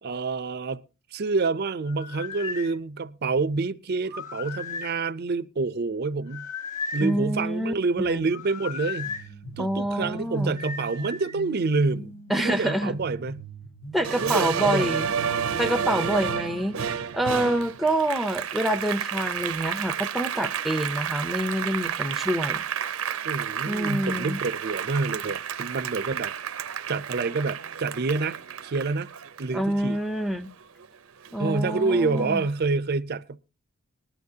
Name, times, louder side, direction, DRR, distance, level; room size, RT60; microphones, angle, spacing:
voice 1, 0.0-0.8 1.1-6.5 6.9-9.1 9.6-13.4 14.2-15.1 23.2-26.6 26.9-29.1 29.4-30.0 31.4-33.4, right 3 dB, 50° right, 0.5 m, -27 dB
sound 1, 1.9-2.7 4.0-5.0 6.3-7.1 8.3-9.2 10.6-11.4, left 5 dB, 40° left, 1.7 m, -35 dB
voice 2, 7.0-8.3 9.6-10.6 12.3-13.0 13.9-15.1 15.6-16.8 17.1-22.6 23.6-24.4 29.5-30.5 31.3-32.4, right 1 dB, ahead, 0.6 m, -27 dB
sound 2, 9.0-16.7, right 2 dB, 70° left, 1.3 m, -42 dB
Applause, 14.0-30.9 31.3-32.4, right 8 dB, 85° right, 0.7 m, -31 dB
19.0 x 12.0 x 2.8 m
head